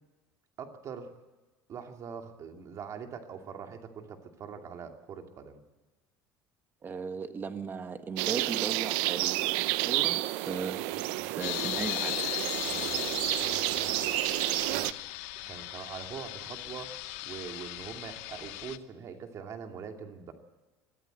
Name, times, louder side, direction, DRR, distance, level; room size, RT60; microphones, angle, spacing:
voice 1, 0.6-1.1 1.7-5.6 10.9-11.4 12.6-14.1 14.7-15.0 15.5-17.0 17.2-20.3, right 6 dB, 40° right, 4 dB, 2.6 m, -43 dB
voice 2, 6.8-9.5 9.8-12.3, right 5 dB, 25° right, 8 dB, 1.4 m, -37 dB
sound 1, 8.2-14.9, right 18 dB, 80° right, 0.7 m, -30 dB
sound 2, 11.4-18.8, left 17 dB, 85° left, 0.8 m, -37 dB
23.0 x 14.5 x 8.0 m, 1.2 s
cardioid pair, 130°, 8 cm